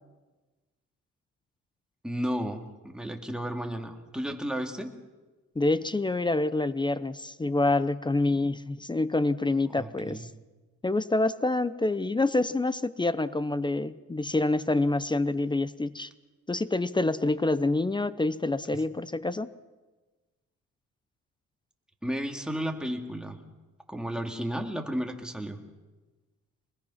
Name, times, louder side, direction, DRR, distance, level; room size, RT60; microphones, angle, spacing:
voice 1, 2.0-4.9 9.7-10.2 22.0-23.4 23.9-25.6, equal, 5° right, 3 dB, 2.6 m, -33 dB
voice 2, 5.6-10.3 10.8-16.1 16.5-19.5, left 2 dB, 15° left, 15 dB, 0.7 m, -27 dB
24.5 x 20.5 x 5.8 m, 1.2 s
cardioid pair, 90°, 30 cm